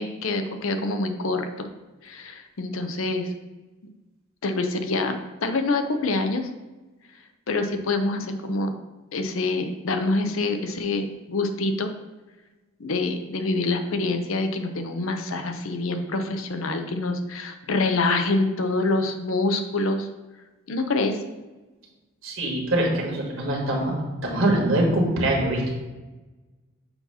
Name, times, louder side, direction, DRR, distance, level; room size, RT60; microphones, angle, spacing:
voice 1, 0.0-1.7 2.0-3.3 4.4-6.5 7.5-8.7 9.1-11.9 12.8-20.1 20.7-21.2, left 2 dB, 70° left, 6 dB, 0.6 m, -26 dB
voice 2, 22.2-23.9 24.2-25.8, right 1 dB, 70° right, -1 dB, 1.5 m, -23 dB
6.9 x 2.8 x 5.6 m, 1.2 s
head